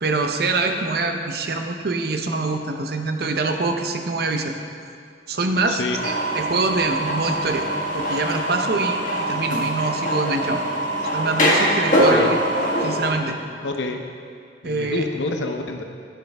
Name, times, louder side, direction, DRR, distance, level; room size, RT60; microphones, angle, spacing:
voice 1, 0.0-4.5 5.3-7.7 7.9-10.6 11.1-12.4 12.8-13.4 14.6-15.1, right 3 dB, 60° right, 5 dB, 0.6 m, -24 dB
voice 2, 5.7-6.0 12.1-12.3 13.6-14.0 14.6-15.9, left 3 dB, 85° left, 5 dB, 0.7 m, -27 dB
sound 1, 5.9-13.1, equal, 45° left, 1.4 m, -23 dB
10.0 x 6.4 x 3.4 m, 2.2 s
head